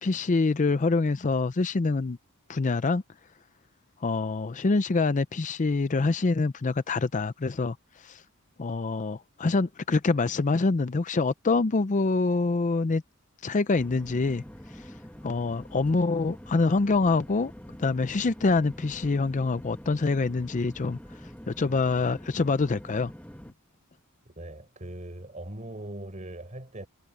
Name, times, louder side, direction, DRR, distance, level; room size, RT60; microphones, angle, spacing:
voice 1, 0.0-2.2 2.5-3.0 4.0-7.8 8.0-8.2 8.6-13.0 13.4-14.4 15.2-17.5 17.8-21.0 21.5-23.1, left 3 dB, 35° left, 0.5 m, -25 dB
sound 1, 13.8-23.5, equal, 5° left, 1.6 m, -45 dB
voice 2, 24.2-26.9, right 1 dB, 35° right, 5.0 m, -40 dB
head